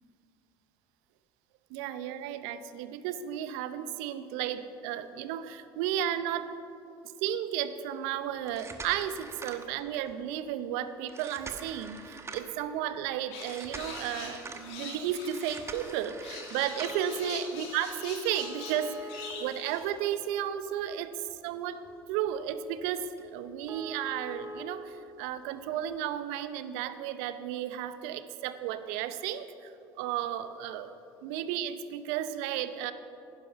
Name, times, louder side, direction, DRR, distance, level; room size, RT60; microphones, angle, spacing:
voice 1, 1.7-6.5 7.2-29.7 30.0-30.9 31.2-32.9, right 10 dB, 70° right, 12 dB, 0.6 m, -33 dB
sound 1, 8.4-10.1 11.1-12.6 13.4-14.7 15.2-17.2 18.4-20.2 20.6-20.7 21.3-21.4 21.8-22.0 22.3-22.4 22.8-22.9 23.2-23.3 23.7-24.6 25.7-25.8, right 2 dB, 25° right, 1.3 m, -44 dB
sound 2, 13.3-19.9, left 4 dB, 65° left, 2.3 m, -44 dB
10.5 x 10.5 x 5.7 m, 2.8 s
hypercardioid pair, 70°, 11 cm